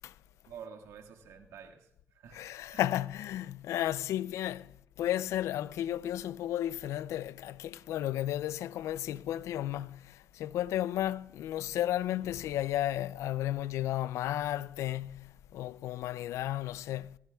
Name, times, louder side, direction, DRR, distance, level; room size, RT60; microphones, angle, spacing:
voice 1, 0.5-2.8, right 7 dB, 85° right, 1.6 m, -50 dB
voice 2, 2.3-4.7 5.0-17.2, left 12 dB, 85° left, 0.4 m, -33 dB
18.0 x 15.0 x 2.3 m
cardioid pair, 70°, 5 cm